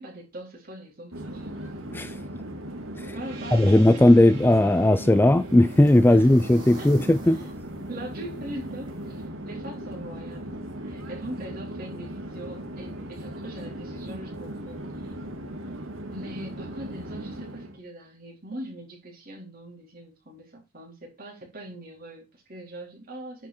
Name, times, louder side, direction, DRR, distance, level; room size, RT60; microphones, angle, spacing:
voice 1, 0.0-1.5 3.1-4.0 6.1-6.3 6.8-6.9 7.2-7.5 7.9-15.1 16.1-23.5, right 1 dB, 45° right, 4.2 m, -41 dB
Conversation / Chatter / Fixed-wing aircraft airplane, 1.1-17.8, right 1 dB, 90° right, 2.1 m, -38 dB
Gong, 3.2-8.2, right 5 dB, 65° right, 4.2 m, -50 dB
voice 2, 3.5-7.4, left 1 dB, 10° left, 0.4 m, -18 dB
sound 1, 4.2-9.3, right 2 dB, 20° right, 3.0 m, -50 dB
9.8 x 5.8 x 4.4 m
head